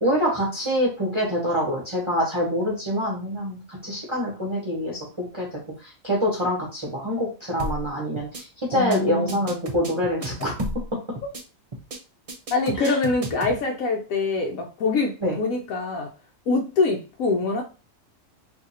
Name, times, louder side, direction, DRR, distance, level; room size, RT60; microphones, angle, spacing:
voice 1, 0.0-5.5 6.0-10.7 12.8-12.9 15.2-15.4, equal, 25° right, -3 dB, 0.9 m, -25 dB
sound 1, 7.6-7.9 8.2-8.4 8.7-9.0 9.3-10.9 11.2-11.4 11.7-12.0 12.3-13.6, right 1 dB, 55° right, 0.4 m, -33 dB
voice 2, 8.7-9.5 10.4-10.5 12.5-16.1 16.5-17.6, left 3 dB, 90° left, 1 dB, 1.1 m, -24 dB
2.7 x 2.5 x 4.1 m, 0.33 s
omnidirectional pair, 1.4 m